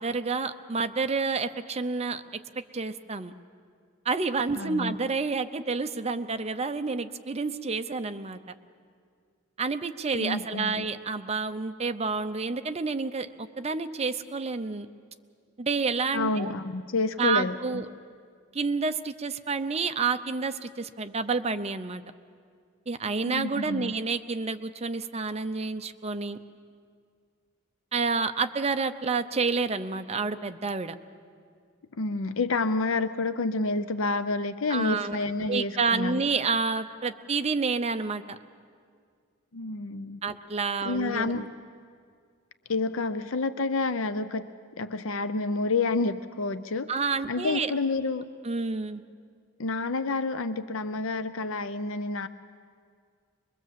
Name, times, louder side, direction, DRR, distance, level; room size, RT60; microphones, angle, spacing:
voice 1, 0.0-2.2 2.7-3.3 4.0-8.4 9.6-14.9 15.6-16.5 17.2-17.9 18.5-22.0 22.9-26.4 27.9-30.9 34.7-35.2 35.5-38.4 40.2-41.5 46.9-47.7 48.4-49.0, right 4 dB, 30° right, 9 dB, 0.6 m, -29 dB
voice 2, 4.5-5.0 10.1-10.8 16.1-17.8 23.2-23.9 32.0-36.2 39.5-40.2 40.8-41.5 42.7-44.5 44.8-46.9 47.3-48.2 49.6-52.3, left 3 dB, 65° left, 12 dB, 0.6 m, -29 dB
23.5 x 22.0 x 7.6 m, 2.1 s
head